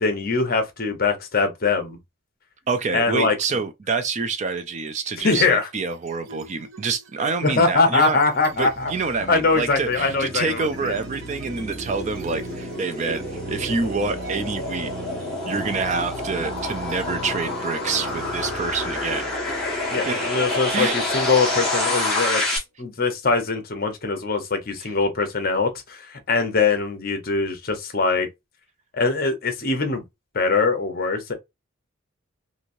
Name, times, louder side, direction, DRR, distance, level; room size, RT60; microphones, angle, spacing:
voice 1, 0.0-2.0 2.9-3.4 5.2-5.7 7.4-8.9 9.3-10.9 19.9-28.3 28.9-30.0 30.3-31.3, left 4 dB, 45° left, 0.8 m, -22 dB
voice 2, 2.7-8.2 8.6-14.9 15.5-19.4 20.0-20.2 20.7-21.0 24.8-24.9, right 4 dB, 30° right, 0.3 m, -27 dB
sound 1, 4.5-5.0 5.4-22.0, right 2 dB, 65° right, 0.7 m, -39 dB
sound 2, 9.5-22.6, left 2 dB, 5° left, 1.2 m, -28 dB
3.0 x 2.7 x 2.5 m
head